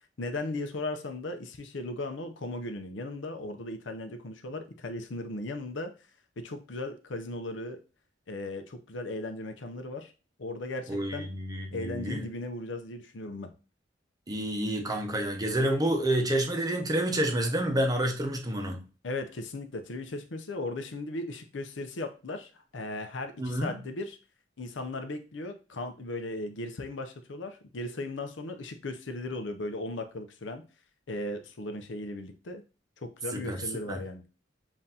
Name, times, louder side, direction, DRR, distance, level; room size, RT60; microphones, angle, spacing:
voice 1, 0.2-5.9 6.4-7.8 8.3-10.1 10.4-11.3 11.7-13.5 19.0-24.2 24.6-30.6 31.1-32.6 33.0-34.2, left 2 dB, 75° left, 0.7 m, -37 dB
voice 2, 10.9-12.2 14.3-18.8 23.4-23.7 33.3-33.6 33.9-34.0, right 1 dB, 20° right, 0.7 m, -29 dB
7.3 x 2.6 x 2.8 m
head